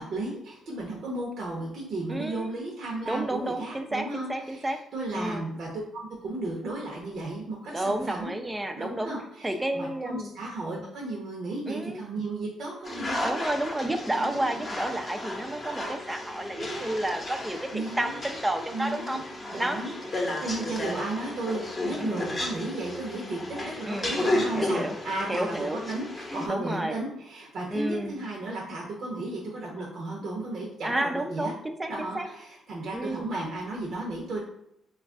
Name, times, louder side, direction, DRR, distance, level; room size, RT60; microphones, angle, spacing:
voice 1, 0.0-5.7 6.2-8.4 8.7-13.4 14.2-14.6 15.7-16.0 16.5-17.0 17.7-18.2 18.7-19.2 19.5-19.9 20.4-31.5 31.9-34.4, right 2 dB, 60° right, -3 dB, 0.8 m, -34 dB
voice 2, 2.1-2.5 3.1-4.8 5.1-5.5 7.7-9.1 9.4-10.3 11.7-12.0 13.2-19.2 19.6-19.8 22.0-22.4 23.9-25.0 25.3-25.8 26.5-26.9 27.7-28.2 30.8-32.3 32.9-33.3, right 1 dB, 10° right, 6 dB, 0.4 m, -31 dB
sound 1, 12.8-26.5, left 1 dB, 30° left, 0.8 m, -33 dB
3.0 x 2.3 x 3.6 m, 0.75 s
cardioid pair, 90°, 0 cm